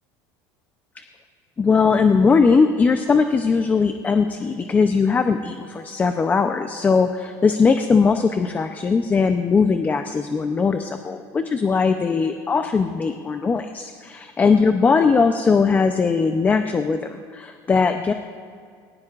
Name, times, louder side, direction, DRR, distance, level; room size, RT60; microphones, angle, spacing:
voice 1, 1.6-18.1, left 5 dB, 20° left, 7 dB, 0.6 m, -19 dB
20.0 x 19.5 x 2.5 m, 2.2 s
cardioid pair, 130°, 8 cm